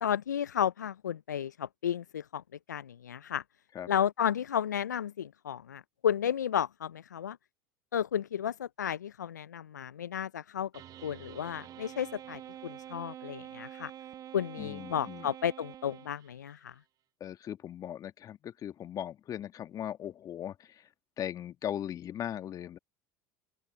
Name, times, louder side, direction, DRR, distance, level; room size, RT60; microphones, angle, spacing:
voice 1, 0.0-2.4 2.7-3.4 3.9-7.4 7.9-10.7 11.0-13.9 14.3-16.7, left 9 dB, 85° left, 0.5 m, -33 dB
sound 1, 10.7-16.5, right 11 dB, 40° right, 1.0 m, -47 dB
voice 2, 14.6-15.3 17.2-20.8 21.2-22.8, left 10 dB, 40° left, 1.8 m, -38 dB
open air
hypercardioid pair, 75°, 9 cm